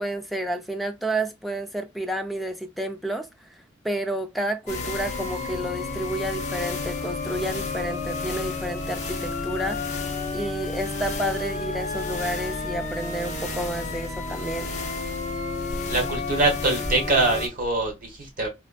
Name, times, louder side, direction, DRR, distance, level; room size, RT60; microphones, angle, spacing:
voice 1, 0.0-3.3 3.8-9.9 10.3-14.7, right 1 dB, ahead, 0.4 m, -30 dB
sound 1, 4.7-17.5, left 3 dB, 40° left, 0.7 m, -31 dB
voice 2, 15.9-18.5, right 2 dB, 45° right, 1.4 m, -23 dB
3.3 x 2.5 x 2.2 m
head